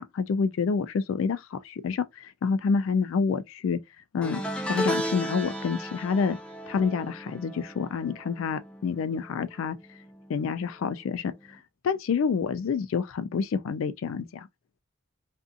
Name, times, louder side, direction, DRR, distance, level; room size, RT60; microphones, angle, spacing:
voice 1, 0.0-2.0 2.4-3.8 4.1-4.4 4.7-6.4 6.7-9.8 10.3-11.3 11.8-14.5, left 5 dB, 65° left, 0.3 m, -28 dB
sound 1, 4.2-9.6 9.9-10.3 11.5-11.6, equal, 5° left, 0.5 m, -34 dB
2.6 x 2.4 x 2.4 m
head